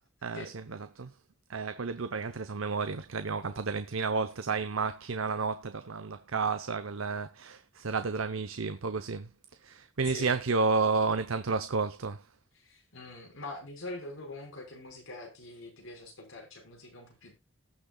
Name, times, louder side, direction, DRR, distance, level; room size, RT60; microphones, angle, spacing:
voice 1, 0.2-1.1 1.5-9.3 9.6-12.3, right 4 dB, 90° right, 0.8 m, -31 dB
voice 2, 12.6-17.3, left 2 dB, 85° left, 5.0 m, -43 dB
19.0 x 6.5 x 2.3 m
head